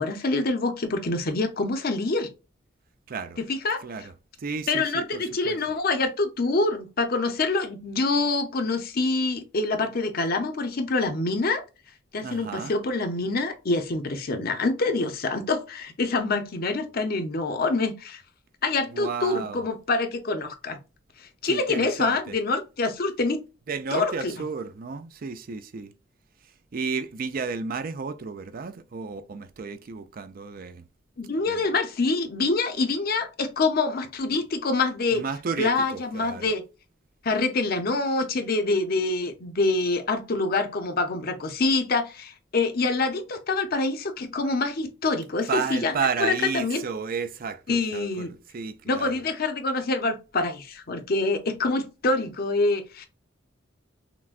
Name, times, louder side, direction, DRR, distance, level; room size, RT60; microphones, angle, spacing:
voice 1, 0.0-2.3 3.5-3.8 4.7-11.6 12.1-18.2 18.6-20.8 21.4-23.4 23.9-24.3 31.2-35.2 35.6-36.6 37.2-45.9 46.2-46.8 47.7-48.3 48.9-53.1, left 3 dB, 55° left, 0.7 m, -26 dB
voice 2, 3.1-3.4 3.8-4.1 4.4-5.6 12.2-12.7 18.9-19.6 21.4-22.4 23.7-25.9 26.7-30.8 31.5-31.7 35.1-36.5 45.5-49.1, right 5 dB, 50° right, 0.4 m, -32 dB
5.9 x 2.2 x 2.4 m
head